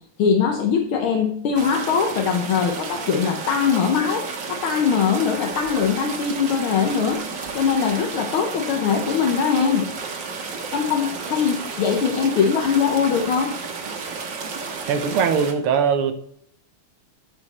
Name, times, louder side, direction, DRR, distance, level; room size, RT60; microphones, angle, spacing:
voice 1, 0.2-7.2 7.5-9.9 10.7-13.6, left 6 dB, 75° left, 1.9 m, -21 dB
sound 1, 1.5-15.5, right 5 dB, 60° right, 2.1 m, -32 dB
voice 2, 14.9-16.1, right 6 dB, 90° right, 2.0 m, -20 dB
13.5 x 5.0 x 4.2 m
omnidirectional pair, 2.4 m